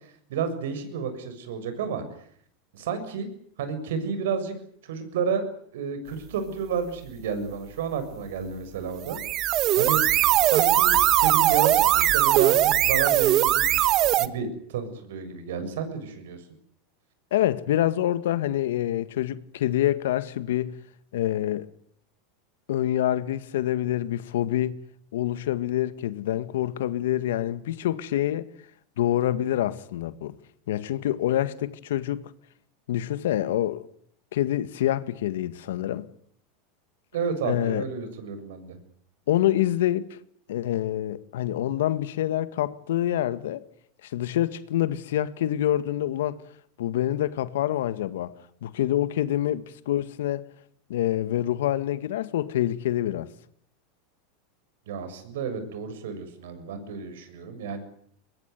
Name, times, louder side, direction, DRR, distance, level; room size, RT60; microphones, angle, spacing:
voice 1, 0.3-2.0 2.7-3.3 3.6-4.5 4.8-5.5 5.7-9.2 9.8-10.0 10.4-13.9 14.2-16.4 37.1-38.8 54.9-57.8, right 6 dB, 80° right, 7.0 m, -31 dB
sound 1, 9.0-14.3, right 14 dB, 45° right, 1.5 m, -20 dB
voice 2, 17.3-20.8 21.1-21.7 22.7-24.8 25.1-28.5 29.0-30.3 30.7-32.3 32.9-33.9 34.3-36.1 37.4-37.8 39.3-40.1 40.5-43.7 44.0-46.4 46.8-48.3 48.6-50.5 50.9-53.3, left 12 dB, 80° left, 1.9 m, -26 dB
23.0 x 22.0 x 9.5 m
supercardioid pair, 115°, 0 cm